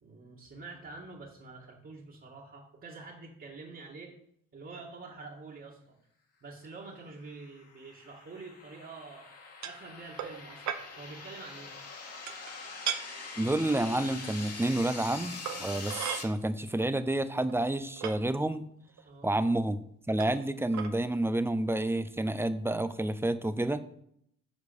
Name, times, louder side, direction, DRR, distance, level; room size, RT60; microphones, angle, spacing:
voice 1, 0.0-4.1 4.5-6.0 6.4-9.3 9.6-11.7 19.0-19.4, right 3 dB, 40° right, -6 dB, 2.3 m, -47 dB
sound 1, 7.3-16.2, left 4 dB, 55° left, 2.4 m, -44 dB
sound 2, 9.6-9.8 10.2-10.4 10.7-10.8 12.3-12.5 12.8-13.0 14.3-14.4 15.4-16.2 17.1-17.2 17.5-18.1 19.0-19.1 20.2-20.4 20.7-20.9, right 9 dB, 65° right, 1.0 m, -35 dB
voice 2, 13.4-18.7 19.2-23.9, right 1 dB, 10° right, 12 dB, 0.7 m, -29 dB
8.2 x 4.9 x 7.0 m, 0.70 s
cardioid pair, 90°, 30 cm